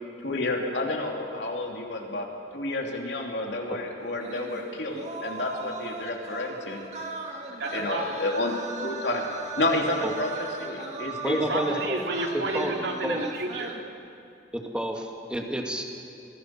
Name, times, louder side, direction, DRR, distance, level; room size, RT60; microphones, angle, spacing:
voice 1, 0.2-2.3 2.5-6.8 7.7-8.5 8.8-9.3 9.6-11.6, left 2 dB, 80° left, 0 dB, 3.1 m, -30 dB
sound 1, 4.2-13.8, right 2 dB, 40° right, 2.2 m, -38 dB
voice 2, 7.6-8.3 11.5-13.8, right 2 dB, 90° right, 1 dB, 2.6 m, -31 dB
voice 3, 11.2-12.0 12.5-12.7 13.1-13.2 14.5-15.8, equal, 5° right, 1 dB, 2.1 m, -30 dB
26.5 x 19.0 x 6.0 m, 2.5 s
head